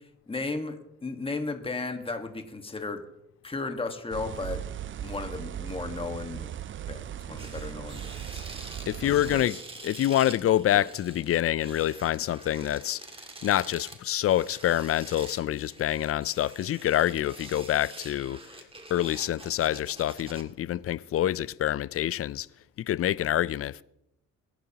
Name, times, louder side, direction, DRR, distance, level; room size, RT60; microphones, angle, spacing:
voice 1, 0.3-3.0 3.4-4.6 5.0-6.5 6.9-8.4 9.0-9.6, left 3 dB, 20° left, 1.5 m, -35 dB
sound 1, 4.1-9.4, right 10 dB, 40° right, 0.5 m, -38 dB
sound 2, 7.4-20.4, right 2 dB, 20° right, 1.9 m, -46 dB
voice 2, 8.9-9.6 9.8-13.0 13.4-18.4 18.9-22.5 22.8-23.8, left 12 dB, 50° left, 0.5 m, -26 dB
22.0 x 11.0 x 2.9 m
cardioid pair, 90°, 30 cm